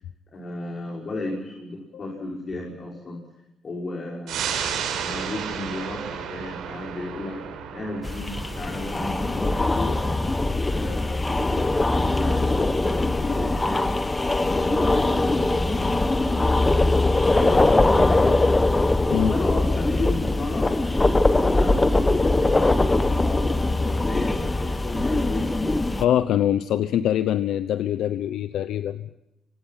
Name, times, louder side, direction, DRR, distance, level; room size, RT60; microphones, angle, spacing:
voice 1, 0.3-3.2 3.6-4.6 4.9-10.0 10.7-13.8 14.4-16.1 17.3-18.4 19.1-20.8 21.4-25.5, left 2 dB, 40° left, -1 dB, 6.0 m, -34 dB
sound 1, 4.3-15.2 15.6-15.7, right 7 dB, 85° right, 5.7 m, -35 dB
sound 2, 8.0-26.0, left 2 dB, 20° left, 1.5 m, -21 dB
voice 2, 26.0-29.1, left 10 dB, 80° left, 12 dB, 0.8 m, -23 dB
27.0 x 24.5 x 5.8 m, 0.89 s
cardioid pair, 90°, 0 cm